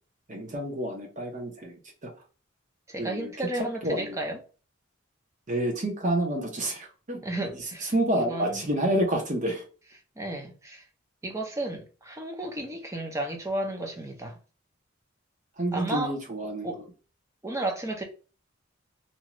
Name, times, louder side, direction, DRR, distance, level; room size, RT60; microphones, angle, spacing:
voice 1, 0.3-2.1 3.0-3.3 3.8-4.2 5.5-7.2 7.9-9.6 15.6-16.7, right 1 dB, 40° right, 0.8 m, -28 dB
voice 2, 2.9-4.4 7.2-8.6 10.2-10.8 11.2-14.4 15.7-16.2 16.6-16.9 17.4-18.0, right 2 dB, 15° right, 0.6 m, -33 dB
2.7 x 2.4 x 2.9 m
head